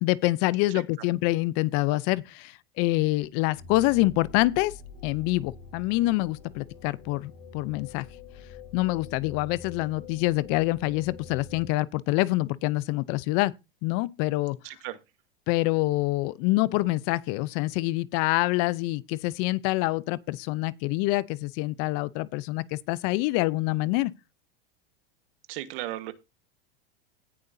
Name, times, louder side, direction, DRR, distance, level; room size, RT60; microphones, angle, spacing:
voice 1, 0.0-4.7 5.0-8.0 8.7-13.5 13.8-14.6 15.5-24.1, left 19 dB, 50° left, 0.7 m, -26 dB
sound 1, 3.5-11.7, left 5 dB, 80° left, 5.4 m, -46 dB
voice 2, 14.6-15.0 25.5-26.1, right 16 dB, 65° right, 1.5 m, -35 dB
17.5 x 6.7 x 2.7 m
hypercardioid pair, 110°, 30 cm